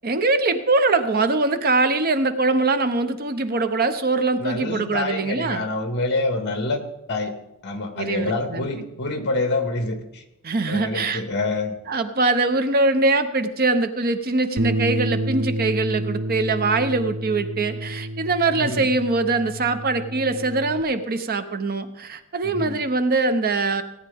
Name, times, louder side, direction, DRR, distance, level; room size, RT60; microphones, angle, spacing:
voice 1, 0.0-5.7 7.9-8.7 10.4-11.2 11.9-23.8, right 3 dB, 45° right, 9 dB, 0.7 m, -22 dB
voice 2, 4.4-6.8 7.1-7.3 7.6-10.2 10.7-11.8 18.6-18.9 22.4-22.8, left 2 dB, 50° left, 6 dB, 1.7 m, -26 dB
Bass guitar, 14.6-20.8, right 1 dB, 75° right, 0.7 m, -29 dB
17.5 x 9.6 x 3.5 m, 0.90 s
head